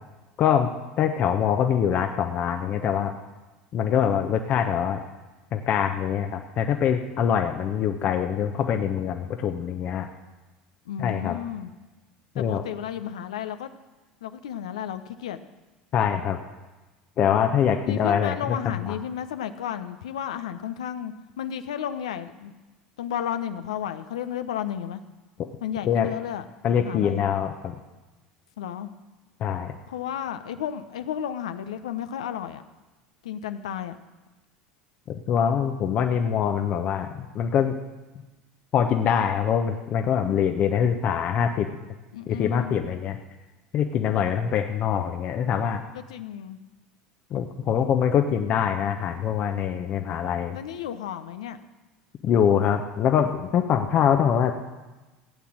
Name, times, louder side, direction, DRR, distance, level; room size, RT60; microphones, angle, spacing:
voice 1, 0.4-0.7 1.0-3.1 3.7-5.0 5.5-10.1 11.0-11.4 12.3-12.7 15.9-16.4 17.2-18.6 18.9-19.0 25.9-26.1 26.6-27.7 29.4-29.7 35.3-37.7 38.7-41.7 42.3-43.2 43.7-45.8 47.3-50.6 52.2-54.5, left 8 dB, 45° left, 5 dB, 1.1 m, -24 dB
voice 2, 10.9-11.7 12.4-13.7 14.2-15.4 17.8-22.5 23.0-25.0 25.6-26.5 26.8-27.2 28.6-28.9 29.9-32.6 33.2-34.0 42.1-42.7 45.9-46.6 50.5-51.6, left 9 dB, 80° left, 10 dB, 0.9 m, -33 dB
16.0 x 8.6 x 7.6 m, 1.2 s
hypercardioid pair, 75°, 3 cm